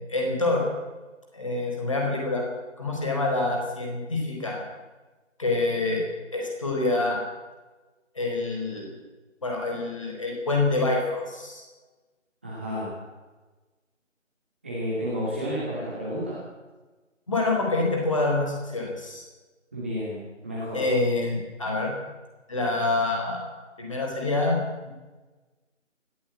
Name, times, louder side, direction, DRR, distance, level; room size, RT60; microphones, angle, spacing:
voice 1, 0.1-0.7 1.3-2.5 2.8-4.6 5.4-6.1 6.3-7.2 8.1-8.9 9.4-11.6 17.3-19.2 20.7-21.9 22.5-23.5 23.8-24.6 24.8-24.9, left 2 dB, 25° left, 0 dB, 4.6 m, -26 dB
voice 2, 12.4-12.9 14.6-16.4 19.7-20.8, equal, 10° right, -8 dB, 2.3 m, -31 dB
21.0 x 15.0 x 8.5 m, 1.2 s
figure-of-eight pair, 170°, 39 cm